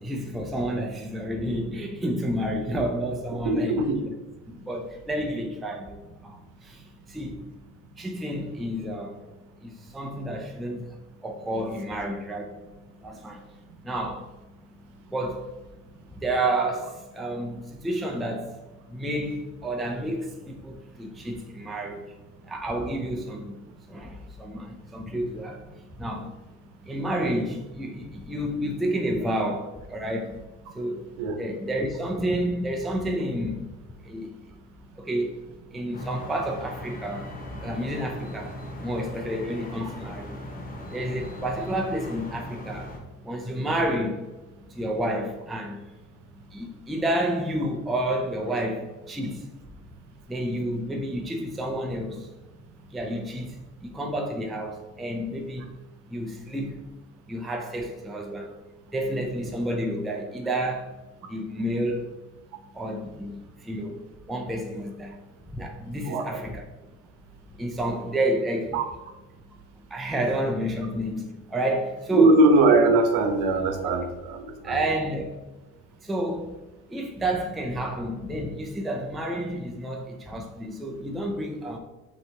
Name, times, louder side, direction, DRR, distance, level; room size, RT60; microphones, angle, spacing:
voice 1, 0.0-3.8 4.5-7.5 8.0-9.3 9.6-12.6 13.0-13.5 13.8-14.3 15.1-15.5 16.1-18.5 18.9-22.2 22.4-23.5 23.9-26.4 26.8-30.4 30.7-31.1 31.4-33.7 34.0-34.6 35.0-40.4 40.9-42.9 43.2-44.3 44.7-45.8 46.3-49.5 50.3-52.3 52.9-55.8 56.0-56.9 57.3-58.6 58.9-61.0 61.2-62.1 62.7-64.0 64.3-65.2 65.5-66.6 67.6-68.8 69.9-72.4 73.8-73.9 74.6-75.5 76.0-76.5 76.9-81.8, right 1 dB, ahead, 0.3 m, -30 dB
voice 2, 3.4-4.0 31.2-31.4 66.1-66.5 68.7-68.8 72.1-74.8, right 2 dB, 75° right, 0.9 m, -21 dB
sound 1, 35.9-43.0, left 1 dB, 25° left, 0.8 m, -39 dB
5.4 x 2.9 x 3.3 m
cardioid pair, 145°, 32 cm